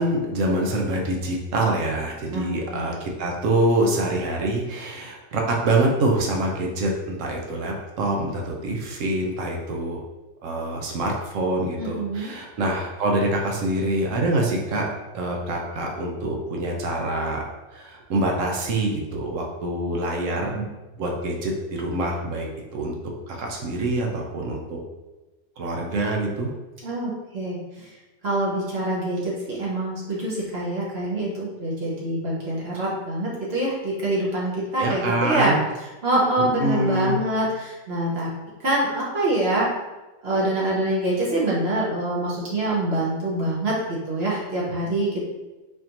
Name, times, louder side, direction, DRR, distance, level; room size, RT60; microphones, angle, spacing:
voice 1, 0.0-10.0 10.4-17.4 17.7-20.6 21.0-22.5 22.7-22.9 23.3-24.8 25.6-26.5 34.8-35.6 36.6-37.2, right 1 dB, 80° right, 0 dB, 1.0 m, -25 dB
voice 2, 2.3-2.9 11.8-12.3 26.8-27.9 28.2-35.5 36.0-38.3 38.6-39.7 40.2-45.2, right 1 dB, 60° right, -5 dB, 1.1 m, -25 dB
4.2 x 2.6 x 2.9 m, 1.1 s
omnidirectional pair, 1.3 m